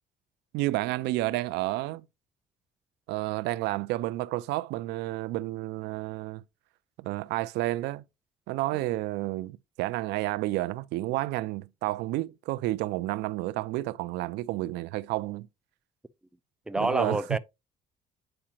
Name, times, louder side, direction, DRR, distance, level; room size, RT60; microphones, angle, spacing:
voice 1, 0.5-2.0 3.1-6.4 7.0-8.0 8.5-15.5 16.8-17.2, right 18 dB, 85° right, 0.4 m, -30 dB
voice 2, 16.7-17.4, right 2 dB, 5° right, 0.4 m, -28 dB
8.7 x 4.8 x 2.8 m
cardioid pair, 110°, 17 cm